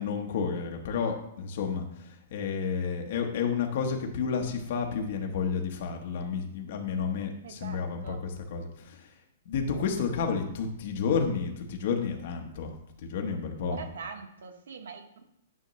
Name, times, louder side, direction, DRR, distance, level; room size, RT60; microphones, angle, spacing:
voice 1, 0.0-9.1 9.5-12.7 13.0-13.9, left 6 dB, 40° left, 2 dB, 1.0 m, -31 dB
voice 2, 7.4-8.2 13.7-15.2, right 6 dB, 90° right, 6 dB, 1.1 m, -43 dB
9.5 x 5.7 x 3.1 m, 0.77 s
hypercardioid pair, 180°, 0 cm